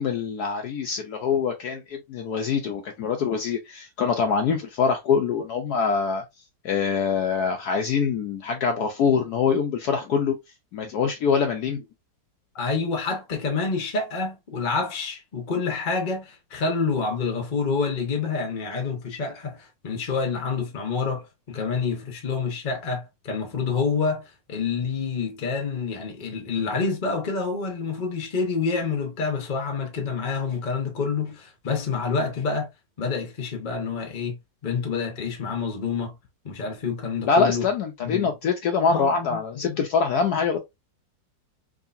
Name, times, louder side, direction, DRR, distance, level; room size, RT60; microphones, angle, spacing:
voice 1, 0.0-6.2 6.6-10.4 10.7-11.8 37.3-40.6, left 5 dB, 70° left, 1.0 m, -24 dB
voice 2, 12.5-32.7 33.0-34.4 34.6-36.1 36.4-37.7 38.0-38.3 38.9-39.8, left 4 dB, 35° left, 0.8 m, -28 dB
3.7 x 3.1 x 2.5 m
omnidirectional pair, 2.0 m